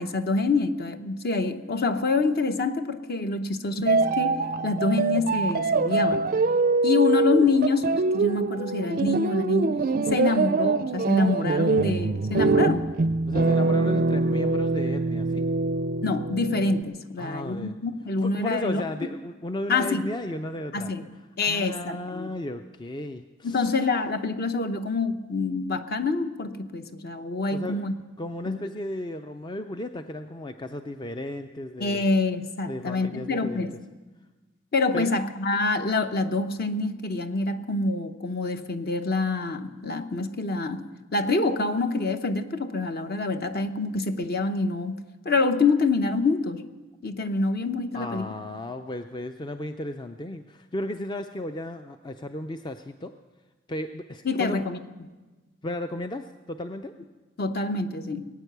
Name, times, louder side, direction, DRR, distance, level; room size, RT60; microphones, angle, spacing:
voice 1, 0.0-4.4 4.6-6.3 6.8-9.8 10.1-12.9 16.0-18.8 19.7-20.1 20.7-21.0 21.4-22.3 23.4-27.9 28.4-28.6 31.8-33.7 34.7-40.8 41.1-45.0 45.2-46.6 47.0-48.3 54.2-54.8 57.4-58.3, left 3 dB, 50° left, 8 dB, 0.8 m, -26 dB
sound 1, 3.9-16.8, right 3 dB, 40° right, 0.4 m, -24 dB
voice 2, 13.3-15.4 17.2-17.8 18.2-20.9 21.4-23.7 27.5-27.8 28.2-32.0 32.7-33.7 34.9-35.1 47.9-53.1 53.7-54.6 55.6-56.9, left 1 dB, 20° left, 8 dB, 0.4 m, -34 dB
20.0 x 9.2 x 6.7 m, 1.2 s
head